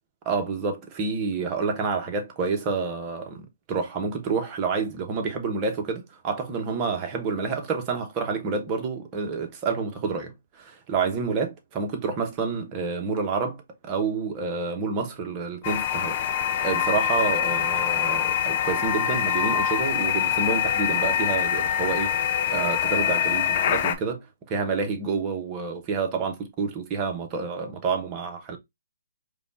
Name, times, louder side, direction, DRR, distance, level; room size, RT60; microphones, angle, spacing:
voice 1, 0.2-3.4 3.7-16.2 16.6-22.1 22.5-28.6, right 5 dB, 30° right, 1.0 m, -28 dB
sound 1, 15.6-23.9, left 9 dB, 40° left, 0.6 m, -24 dB
5.0 x 2.3 x 2.6 m
hypercardioid pair, 140°, 0 cm